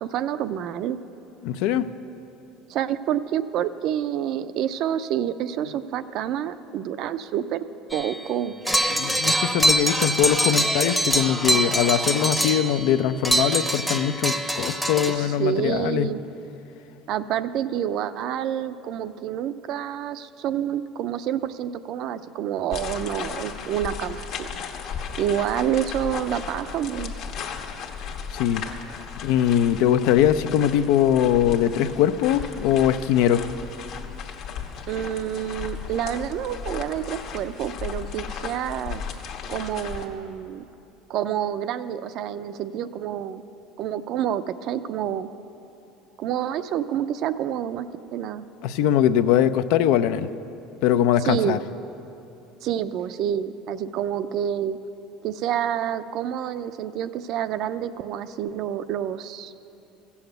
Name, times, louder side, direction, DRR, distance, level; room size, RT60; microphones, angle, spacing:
voice 1, 0.0-1.0 2.7-7.6 7.9-8.5 15.1-16.2 17.1-24.5 25.2-27.1 34.9-39.0 39.5-40.6 41.1-43.4 43.8-45.3 46.2-47.9 48.1-48.4 51.2-51.6 52.6-54.8 55.2-59.6, right 10 dB, 55° right, 13 dB, 0.5 m, -28 dB
voice 2, 1.4-1.9 8.9-16.1 28.3-28.6 29.2-33.5 48.6-50.3 50.8-51.6, left 10 dB, 75° left, 12 dB, 0.5 m, -21 dB
sound 1, 7.9-8.3 8.7-12.9 13.2-15.2, right 1 dB, ahead, 0.7 m, -24 dB
sound 2, 22.7-40.1, left 6 dB, 55° left, 1.1 m, -35 dB
14.5 x 7.1 x 7.9 m, 2.9 s
cardioid pair, 135°, 0 cm